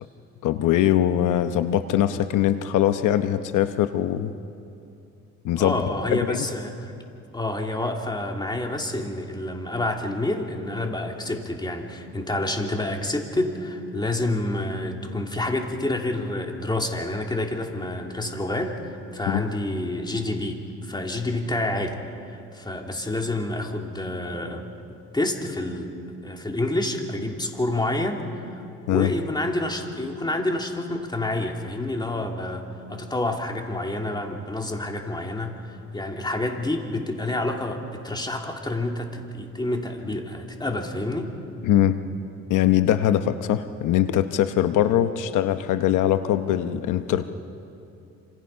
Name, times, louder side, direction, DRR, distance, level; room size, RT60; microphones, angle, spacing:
voice 1, 0.4-4.3 5.4-5.8 6.1-6.5 19.3-19.4 28.9-29.1 41.6-42.0 42.5-47.3, left 11 dB, 90° left, 10 dB, 0.9 m, -22 dB
voice 2, 5.6-6.9 7.3-22.0 22.5-25.9 26.2-28.6 28.9-32.6 32.9-35.6 35.9-41.3, left 1 dB, 15° left, 2 dB, 3.0 m, -28 dB
27.5 x 27.0 x 5.7 m, 2.6 s
cardioid pair, 90°, 30 cm